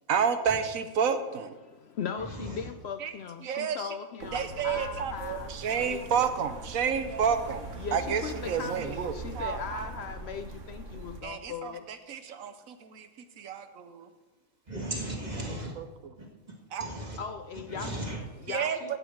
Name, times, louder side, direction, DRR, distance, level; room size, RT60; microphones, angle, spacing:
voice 1, 0.1-1.5 3.0-3.1 3.4-3.9 4.3-9.9 11.2-13.1 13.4-14.1 15.5-16.1 16.7-16.9 18.5-19.0, right 7 dB, 85° right, 9 dB, 1.2 m, -30 dB
voice 2, 1.6-6.1 7.8-11.9 17.2-19.0, left 6 dB, 65° left, 9 dB, 0.7 m, -39 dB
sound 1, 4.2-11.2, right 3 dB, 65° right, 1.6 m, -42 dB
voice 3, 14.7-15.7 16.2-16.3 16.8-17.2 17.7-18.2, right 1 dB, 30° right, -1 dB, 2.1 m, -36 dB
16.0 x 7.8 x 4.5 m, 1.1 s
omnidirectional pair, 1.4 m